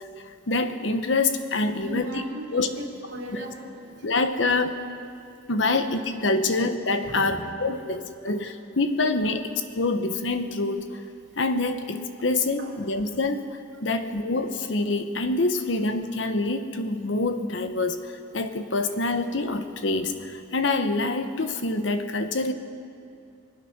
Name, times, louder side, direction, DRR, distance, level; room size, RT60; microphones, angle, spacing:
voice 1, 0.0-2.2 2.5-2.7 3.3-3.4 4.0-4.8 5.5-11.0 11.4-22.5, left 3 dB, 70° left, 8 dB, 1.0 m, -26 dB
voice 2, 1.7-3.9 6.4-6.5 7.0-7.3 7.8-7.9 12.6-12.7, equal, 65° right, -2 dB, 2.9 m, -37 dB
24.5 x 9.2 x 5.9 m, 2.5 s
head